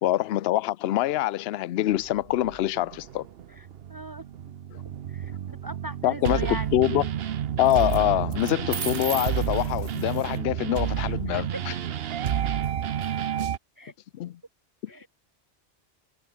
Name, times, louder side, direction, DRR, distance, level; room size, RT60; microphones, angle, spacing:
voice 1, 0.0-3.3 6.0-7.1 7.6-11.5 14.2-14.4, left 14 dB, 70° left, 0.8 m, -25 dB
sound 1, 1.9-13.6, right 9 dB, 65° right, 0.9 m, -30 dB
voice 2, 3.5-4.5 5.1-7.0 11.3-11.6 13.8-13.9 14.9-15.1, right 2 dB, 30° right, 0.4 m, -39 dB
sound 2, 4.8-5.3 7.7-8.0 8.3-10.4, right 4 dB, 80° right, 2.6 m, -37 dB
omnidirectional pair, 1.2 m